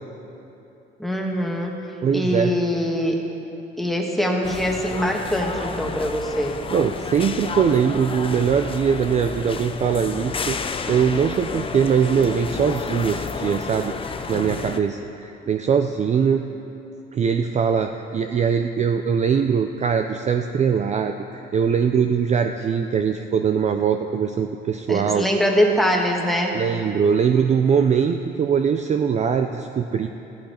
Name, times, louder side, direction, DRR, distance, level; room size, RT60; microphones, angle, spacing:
voice 1, 1.0-1.7 2.1-3.2 3.8-6.6 24.9-26.6, equal, ahead, 0 dB, 1.4 m, -23 dB
voice 2, 2.0-2.5 6.7-10.6 10.9-16.4 17.1-25.3 26.5-30.1, right 7 dB, 35° right, 6 dB, 0.4 m, -21 dB
sound 1, 4.4-14.8, left 5 dB, 25° left, 0.6 m, -31 dB
14.5 x 11.5 x 4.3 m, 2.9 s
cardioid pair, 115°, 21 cm